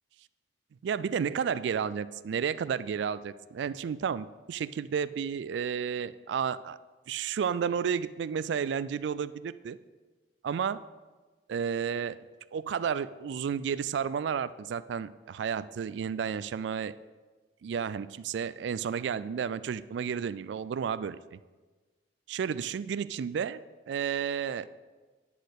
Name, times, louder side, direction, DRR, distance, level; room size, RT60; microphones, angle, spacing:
voice 1, 0.8-6.8 7.1-9.8 10.4-10.8 11.5-12.2 12.5-16.9 17.6-21.4 22.3-23.6 23.9-24.7, right 7 dB, 65° right, 16 dB, 0.3 m, -32 dB
10.0 x 4.2 x 6.5 m, 1.3 s
head